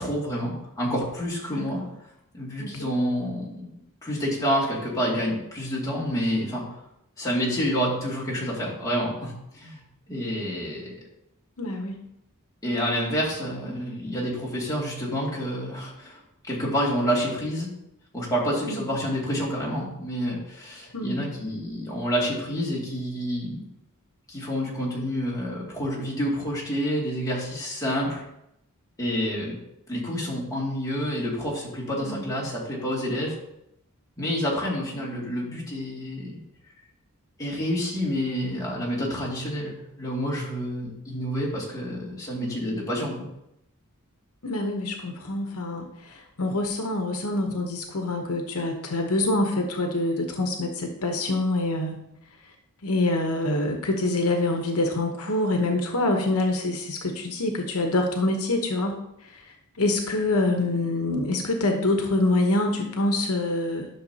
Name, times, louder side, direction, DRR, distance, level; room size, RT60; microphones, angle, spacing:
voice 1, 0.0-1.8 2.3-3.7 4.0-6.6 7.2-9.8 10.1-10.9 12.6-16.2 16.5-17.7 18.1-23.6 24.3-28.2 29.0-29.5 29.9-33.4 34.2-36.4 37.4-43.3, equal, 15° left, -5 dB, 2.4 m, -28 dB
voice 2, 1.5-1.8 2.6-2.8 11.6-12.0 18.6-18.8 20.9-21.2 32.0-32.3 44.4-52.0 52.8-59.0 59.2-59.3 59.8-63.9, left 2 dB, 75° left, 3 dB, 1.0 m, -26 dB
11.0 x 6.2 x 2.8 m, 0.82 s
head